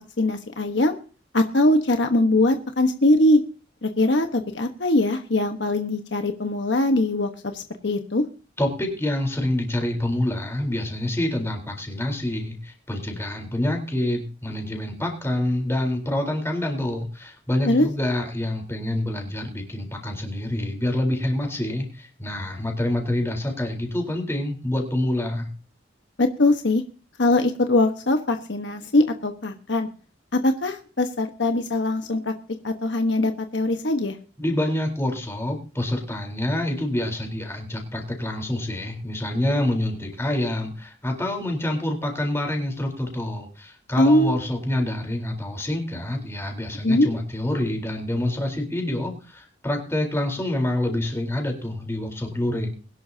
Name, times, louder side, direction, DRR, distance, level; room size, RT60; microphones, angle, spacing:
voice 1, 0.2-1.0 1.3-3.4 3.8-8.2 17.7-17.9 26.2-26.8 27.2-29.9 30.3-32.3 32.6-34.2 44.0-44.4 46.8-47.1, left 1 dB, 70° left, 5 dB, 1.3 m, -21 dB
voice 2, 8.6-25.5 34.4-52.7, left 1 dB, 15° left, 2 dB, 3.9 m, -27 dB
22.0 x 11.5 x 2.8 m, 0.38 s
head